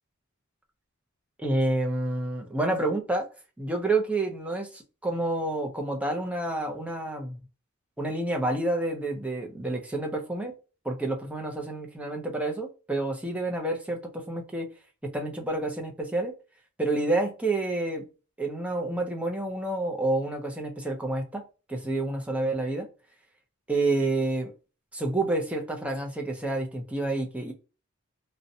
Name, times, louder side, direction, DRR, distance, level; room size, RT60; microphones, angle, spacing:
voice 1, 1.4-3.3 3.6-7.4 8.0-10.5 10.8-14.7 15.1-16.3 16.8-18.1 18.4-22.9 23.7-24.5 24.9-27.5, right 2 dB, 5° right, 0.5 m, -29 dB
2.6 x 2.1 x 2.6 m
head